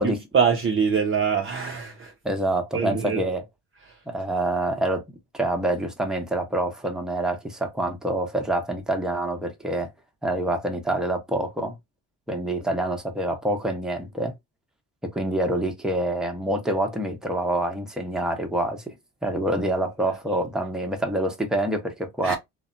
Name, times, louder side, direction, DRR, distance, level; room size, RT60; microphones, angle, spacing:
voice 1, 0.0-2.1 2.7-3.2 3.9-4.0 22.2-22.4, right 6 dB, 30° right, 0.5 m, -24 dB
voice 2, 2.2-3.4 4.1-5.0 5.3-9.9 10.2-11.7 12.3-14.3 15.0-18.9 19.2-22.4, right 1 dB, ahead, 0.8 m, -26 dB
2.6 x 2.1 x 2.5 m
supercardioid pair, 70°, 43 cm